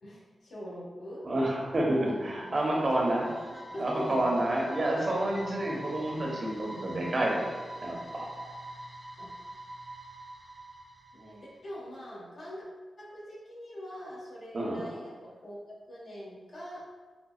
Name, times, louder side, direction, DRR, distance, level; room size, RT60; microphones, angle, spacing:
voice 1, 0.0-1.3 1.9-4.4 8.1-8.3 9.2-9.3 11.1-12.6 13.0-15.5 15.9-16.8, equal, 75° left, -7 dB, 1.4 m, -43 dB
voice 2, 1.2-3.3 3.8-7.5 7.8-8.3 14.5-14.9, right 1 dB, 50° right, -2 dB, 0.9 m, -29 dB
sound 1, 1.8-11.8, right 1 dB, 20° left, 0.9 m, -45 dB
5.1 x 2.3 x 2.4 m, 1.4 s
cardioid pair, 55°, 0 cm